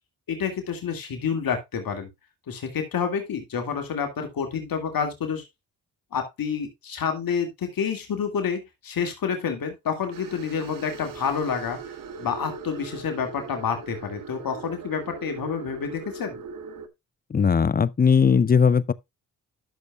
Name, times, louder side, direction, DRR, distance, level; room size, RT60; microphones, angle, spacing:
voice 1, 0.3-2.1 2.5-5.4 6.1-11.8 12.2-16.4, left 6 dB, 70° left, 2.1 m, -28 dB
sound 1, 10.1-16.9, right 5 dB, 65° right, 1.3 m, -40 dB
voice 2, 17.3-18.9, left 6 dB, 25° left, 0.5 m, -19 dB
12.5 x 6.7 x 2.3 m
supercardioid pair, 55°, 37 cm